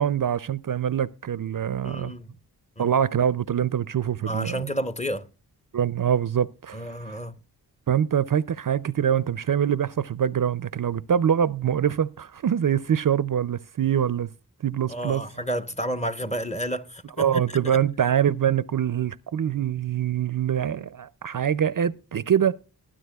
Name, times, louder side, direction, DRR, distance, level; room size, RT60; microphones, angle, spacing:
voice 1, 0.0-2.1 2.8-4.7 5.7-7.2 7.9-14.3 14.6-15.2 17.2-22.5, right 9 dB, 55° right, 0.5 m, -24 dB
voice 2, 1.8-2.3 2.8-2.9 4.3-5.3 6.7-7.3 14.9-17.4 17.7-17.8, equal, 15° left, 0.9 m, -31 dB
20.5 x 9.8 x 2.3 m
cardioid pair, 50°, 40 cm